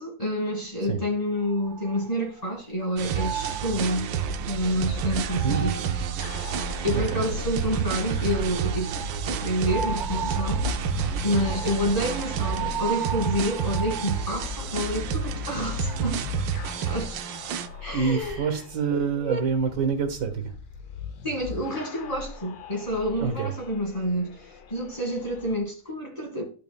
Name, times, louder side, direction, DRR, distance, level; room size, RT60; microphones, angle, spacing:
voice 1, 0.0-5.8 6.3-8.9 9.2-10.7 11.2-16.5 16.9-17.2 17.8-18.5 19.2-19.4 21.2-26.4, equal, 20° left, 2.1 m, -29 dB
sound 1, 1.4-2.6 3.0-7.3 8.0-14.7 15.5-18.1, right 7 dB, 50° right, 1.1 m, -38 dB
sound 2, 3.0-17.7, right 7 dB, 90° right, 1.3 m, -30 dB
voice 2, 5.4-5.7 6.9-7.2 17.9-20.5 23.2-23.5, right 5 dB, 70° right, 1.9 m, -26 dB
sound 3, 6.2-25.6, left 6 dB, 85° left, 1.4 m, -38 dB
13.0 x 5.5 x 2.3 m
omnidirectional pair, 1.9 m